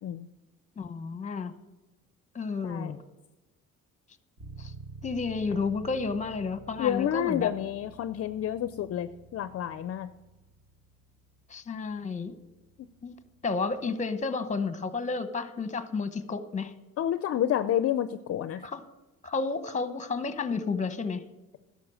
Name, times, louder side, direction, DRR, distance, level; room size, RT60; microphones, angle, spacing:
voice 1, 0.8-1.5 2.3-3.0 4.6-4.7 5.0-7.5 11.5-12.4 13.0-13.1 13.4-16.7 18.6-18.8 19.2-21.2, left 4 dB, 25° left, 12 dB, 0.8 m, -31 dB
Bass guitar, 4.4-14.1, right 3 dB, 80° right, 2.8 m, -50 dB
voice 2, 6.8-10.1 17.0-18.6, left 10 dB, 50° left, 13 dB, 0.5 m, -29 dB
11.5 x 6.8 x 6.2 m, 1.1 s
cardioid pair, 90°, 30 cm